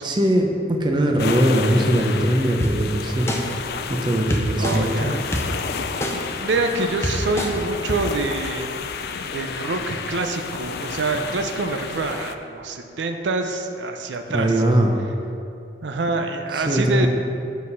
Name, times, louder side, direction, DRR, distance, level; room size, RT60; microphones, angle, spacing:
voice 1, 0.0-3.3 4.0-5.1 14.3-15.0 16.5-17.1, right 1 dB, 25° right, 2 dB, 0.6 m, -20 dB
sound 1, 1.2-12.3, left 5 dB, 55° left, 0.3 m, -31 dB
sound 2, 2.6-2.7 3.3-3.4 4.3-4.8 5.3-5.4 6.0-6.1 6.7-6.8 7.0-7.5 7.9-8.0, left 1 dB, 15° left, 0.6 m, -24 dB
voice 2, 4.6-5.3 6.3-8.7 9.2-14.5 15.8-17.1, right 3 dB, 80° right, 6 dB, 0.5 m, -26 dB
7.4 x 4.1 x 5.6 m, 2.6 s
head